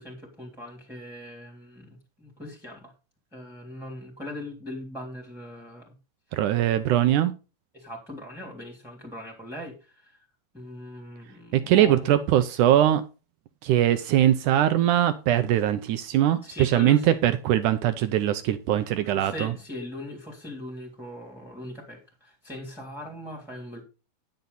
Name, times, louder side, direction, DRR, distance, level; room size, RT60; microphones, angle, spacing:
voice 1, 0.0-2.9 3.3-5.9 6.8-6.9 7.7-10.3 10.5-12.2 16.4-17.2 19.0-23.8, left 1 dB, ahead, 2.3 m, -40 dB
voice 2, 6.3-7.3 11.5-13.0 13.6-19.5, right 12 dB, 80° right, 1.8 m, -21 dB
11.0 x 8.0 x 4.0 m
omnidirectional pair, 4.4 m